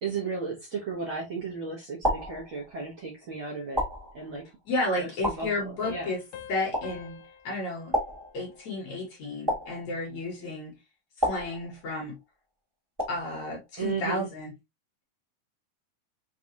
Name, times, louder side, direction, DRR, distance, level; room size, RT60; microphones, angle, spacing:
voice 1, 0.0-3.8 4.1-4.4 5.0-5.1 5.4-5.5 5.9-6.1 13.8-14.3, right 5 dB, 65° right, 1.3 m, -34 dB
sound 1, 0.9-1.4 2.0-3.0 3.8-4.6 5.2-6.1 6.7-7.4 7.9-8.8 9.5-10.3 11.2-12.2 13.0-13.6, left 1 dB, 15° right, 0.8 m, -33 dB
voice 2, 4.7-6.2 6.5-7.9 8.3-10.7 11.2-12.2 13.1-14.5, left 2 dB, 60° left, 2.3 m, -32 dB
sound 2, 5.8-9.1, left 9 dB, 75° left, 2.3 m, -47 dB
5.7 x 2.5 x 2.8 m
omnidirectional pair, 4.1 m